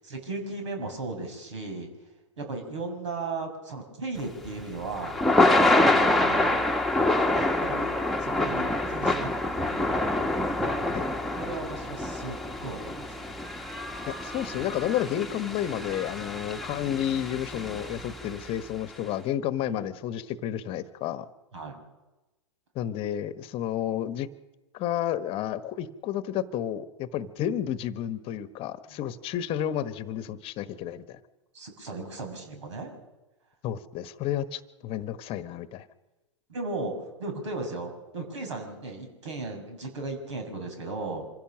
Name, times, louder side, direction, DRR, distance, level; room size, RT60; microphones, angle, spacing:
voice 1, 0.0-1.9 2.4-5.2 5.7-6.7 7.6-7.9 8.2-10.2 11.4-13.4 19.6-19.8 21.5-21.8 28.9-29.0 31.5-33.0 36.5-36.9 37.2-41.3, right 3 dB, 70° right, 5 dB, 6.3 m, -36 dB
Thunder / Rain, 4.2-18.5, left 2 dB, ahead, 1.6 m, -26 dB
voice 2, 14.1-21.3 22.7-24.3 24.7-31.2 33.6-35.9, left 11 dB, 35° left, 13 dB, 1.2 m, -31 dB
26.0 x 16.0 x 6.3 m, 1.1 s
figure-of-eight pair, 100°, 16 cm